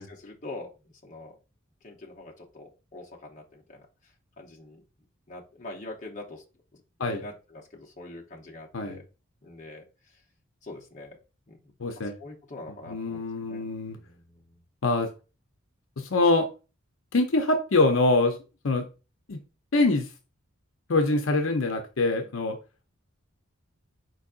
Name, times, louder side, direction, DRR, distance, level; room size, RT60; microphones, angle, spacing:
voice 1, 0.0-1.4 1.8-3.9 4.4-4.8 5.3-6.4 6.7-9.1 9.4-10.2 10.6-11.2 11.5-11.6 12.0-14.6, left 2 dB, 35° left, -1 dB, 0.9 m, -44 dB
voice 2, 11.8-12.1 12.9-14.0 14.8-15.1 16.0-16.5 17.1-18.3 18.6-18.8 19.3-19.4 19.7-20.1 20.9-22.6, left 2 dB, 70° left, 4 dB, 0.7 m, -24 dB
4.6 x 4.0 x 2.5 m, 0.30 s
head